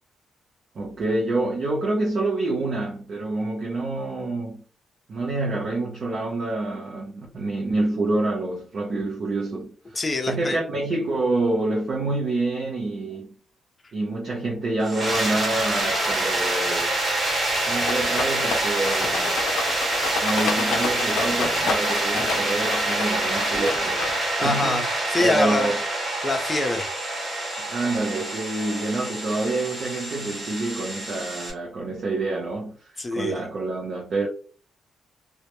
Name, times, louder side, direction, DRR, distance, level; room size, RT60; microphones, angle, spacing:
voice 1, 0.7-4.6 5.1-9.7 10.3-13.3 13.9-16.9 17.7-19.4 20.2-24.0 24.4-24.8 25.2-25.8 27.6-32.8 33.1-34.3, right 2 dB, 55° right, 0.6 m, -27 dB
voice 2, 9.9-10.6 24.4-25.7 26.2-26.9 33.0-33.4, left 2 dB, 25° left, 0.6 m, -25 dB
sound 1, 14.8-31.5, right 1 dB, 35° right, 1.3 m, -26 dB
Rattle, 17.8-24.5, left 5 dB, 80° left, 0.4 m, -31 dB
2.2 x 2.0 x 2.9 m
cardioid pair, 95°, 0 cm